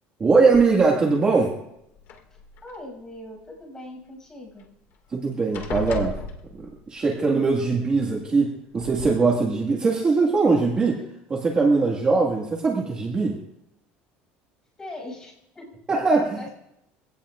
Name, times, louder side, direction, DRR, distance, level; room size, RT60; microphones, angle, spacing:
voice 1, 0.2-1.5 5.1-6.2 6.5-11.0 11.3-13.4 15.9-16.4, right 4 dB, 20° right, -2 dB, 1.9 m, -21 dB
sound 1, 0.5-1.1 2.0-2.8 4.6-4.7 5.0-5.2 5.5-7.0 8.1-8.2 8.8-9.1, left 4 dB, 50° left, 2.2 m, -35 dB
voice 2, 2.6-4.7 14.8-15.8 16.3-16.5, left 1 dB, 15° left, 0 dB, 6.8 m, -41 dB
24.0 x 17.5 x 2.5 m, 0.82 s
cardioid pair, 160°, 4 cm